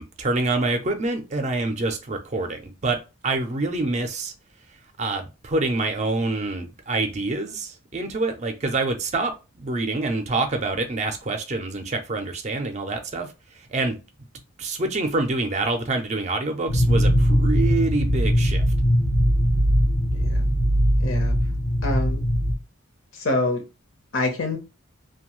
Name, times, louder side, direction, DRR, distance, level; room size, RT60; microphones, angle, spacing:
voice 1, 0.0-3.0 3.2-4.3 5.0-13.3 13.7-14.0 14.6-18.6, right 2 dB, 35° right, 0.4 m, -26 dB
sound 1, 16.7-22.5, equal, 20° left, 0.4 m, -20 dB
voice 2, 20.1-20.5 21.0-21.3 21.8-22.2 23.1-23.6 24.1-24.6, left 2 dB, 70° left, 0.8 m, -26 dB
2.6 x 2.2 x 3.0 m
head